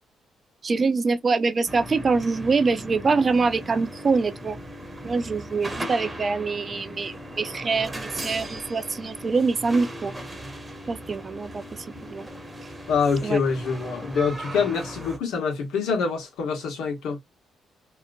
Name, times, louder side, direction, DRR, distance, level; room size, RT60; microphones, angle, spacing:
voice 1, 0.6-4.6 5.0-10.1 10.9-11.6 12.1-12.3 13.2-13.4, right 4 dB, 35° right, 0.5 m, -24 dB
sound 1, 1.7-15.2, right 1 dB, 10° right, 0.9 m, -38 dB
voice 2, 12.9-17.2, left 5 dB, 85° left, 1.2 m, -25 dB
2.9 x 2.4 x 2.5 m
cardioid pair, 90°, 0 cm